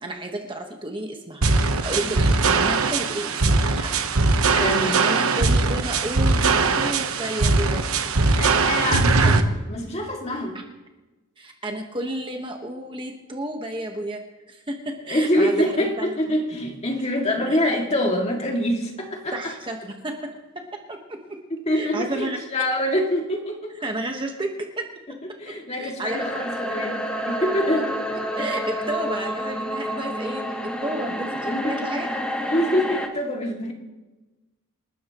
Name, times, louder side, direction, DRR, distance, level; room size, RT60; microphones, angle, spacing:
voice 1, 0.0-1.5 1.8-3.9 4.8-7.8 11.4-14.2 14.5-16.2 17.4-17.6 19.3-20.3 20.5-21.2 21.7-22.4 23.8-24.9 25.8-26.5 28.4-32.1, right 1 dB, 25° right, 3 dB, 1.4 m, -31 dB
sound 1, 1.4-9.4, right 3 dB, 85° right, 1.1 m, -20 dB
voice 2, 4.5-5.3 8.4-10.6 15.1-19.5 21.7-23.7 25.4-27.0 27.3-28.4 31.1-31.8 32.5-33.7, left 1 dB, 30° left, 1 dB, 2.4 m, -25 dB
sound 2, 26.1-33.1, equal, 5° left, 1.2 m, -29 dB
28.0 x 13.0 x 3.1 m, 1.1 s
head